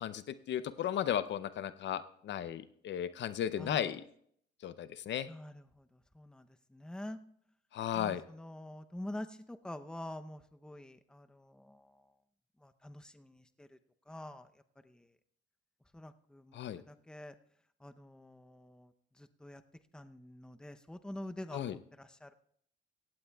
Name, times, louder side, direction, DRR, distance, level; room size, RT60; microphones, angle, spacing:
voice 1, 0.0-4.0 4.6-5.3 7.7-8.2 16.5-16.8 21.5-21.8, left 10 dB, 65° left, 13 dB, 0.6 m, -35 dB
voice 2, 3.6-3.9 5.3-7.2 7.9-12.0 12.6-13.8 14.1-14.5 14.8-15.1 15.9-17.3 17.8-18.9 19.2-19.6 19.9-22.3, left 1 dB, 5° left, 9 dB, 0.7 m, -47 dB
17.0 x 15.5 x 2.3 m, 0.66 s
cardioid pair, 90°, 20 cm